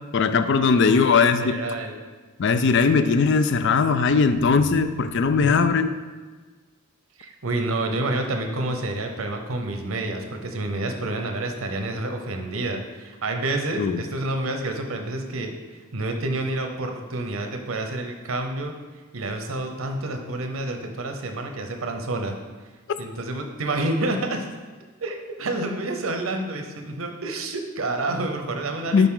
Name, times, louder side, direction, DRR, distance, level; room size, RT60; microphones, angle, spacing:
voice 1, 0.1-1.6 2.4-5.9 13.8-14.0 28.9-29.1, left 5 dB, 60° left, 10 dB, 0.4 m, -19 dB
voice 2, 0.7-2.0 5.4-5.6 7.2-15.5 15.9-18.7 19.1-22.4 23.0-24.5 25.0-29.1, right 2 dB, 85° right, 4 dB, 0.8 m, -29 dB
9.0 x 4.0 x 3.8 m, 1.4 s
head